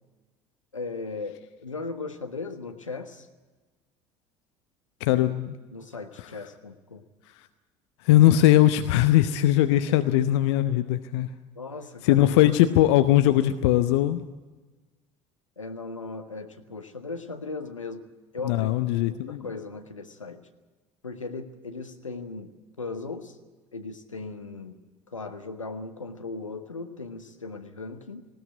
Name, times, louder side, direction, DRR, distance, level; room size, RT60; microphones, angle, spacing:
voice 1, 0.7-3.3 5.2-5.3 5.7-7.0 11.5-12.4 13.0-13.1 15.6-18.0 18.3-18.7 19.1-20.4 21.0-22.5 22.8-23.3 23.7-24.8 25.1-28.3, left 3 dB, 85° left, 7 dB, 1.3 m, -37 dB
voice 2, 5.0-5.6 8.0-11.3 12.0-14.2 18.4-19.5, left 13 dB, 60° left, 11 dB, 0.8 m, -20 dB
19.5 x 17.5 x 9.2 m, 1.3 s
figure-of-eight pair, 60°, 16 cm